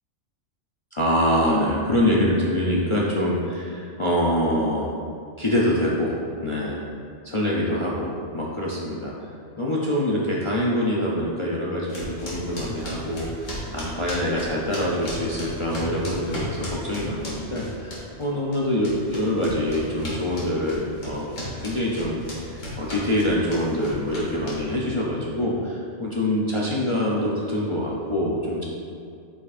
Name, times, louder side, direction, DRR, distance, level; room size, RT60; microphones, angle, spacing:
voice 1, 0.9-4.9 5.4-6.1 6.4-6.8 7.2-9.3 9.6-21.3 21.6-28.6, left 1 dB, 40° left, -5 dB, 0.4 m, -25 dB
sound 1, 11.9-18.3 18.5-24.9, equal, 85° left, 1.9 m, -35 dB
8.2 x 5.1 x 2.5 m, 2.4 s
omnidirectional pair, 1.3 m